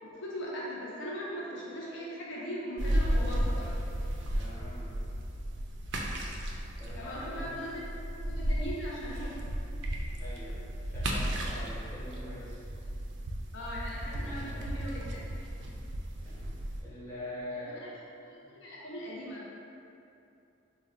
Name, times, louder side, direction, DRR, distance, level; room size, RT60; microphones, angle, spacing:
voice 1, 0.0-3.7 7.0-7.8 8.2-9.4 13.5-15.3 17.5-17.9 18.2-19.5, equal, 65° left, -6 dB, 0.5 m, -39 dB
sound 1, 2.8-16.8, equal, 60° right, 0.3 m, -34 dB
voice 2, 4.3-5.0 6.8-7.5 10.2-12.6 16.2-17.9 18.4-18.5, left 1 dB, 10° left, -11 dB, 0.7 m, -44 dB
3.9 x 2.1 x 2.4 m, 2.7 s
head